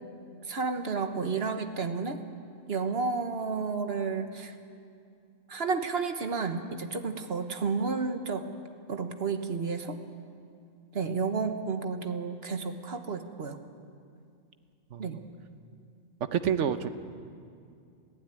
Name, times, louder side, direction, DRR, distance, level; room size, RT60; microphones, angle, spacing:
voice 1, 0.5-2.2 2.7-4.5 5.5-8.5 8.9-10.0 10.9-13.6 15.0-15.2, right 4 dB, 60° right, 7 dB, 1.4 m, -31 dB
voice 2, 14.9-15.2 16.3-16.9, right 8 dB, 85° right, 11 dB, 1.2 m, -28 dB
22.0 x 15.5 x 9.1 m, 2.4 s
omnidirectional pair, 1.2 m